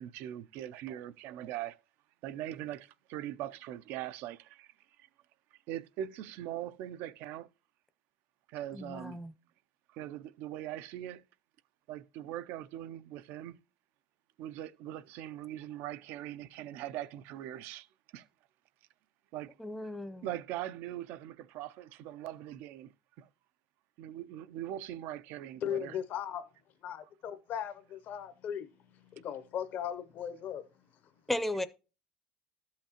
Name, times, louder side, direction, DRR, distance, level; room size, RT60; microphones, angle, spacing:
voice 1, 0.0-1.8 2.2-4.7 5.0-5.1 5.5-7.5 8.5-9.2 9.9-11.2 11.9-13.6 14.4-17.9 18.1-18.3 19.3-19.6 20.2-22.9 23.2-23.3 24.0-26.0, right 12 dB, 70° right, 0.5 m, -41 dB
voice 2, 8.7-9.3 19.6-20.3 31.3-31.7, left 1 dB, 5° left, 0.5 m, -35 dB
voice 3, 25.6-26.5 26.8-28.7 28.9-30.6, left 9 dB, 55° left, 0.7 m, -37 dB
12.5 x 5.7 x 2.8 m
cardioid pair, 120°, 4 cm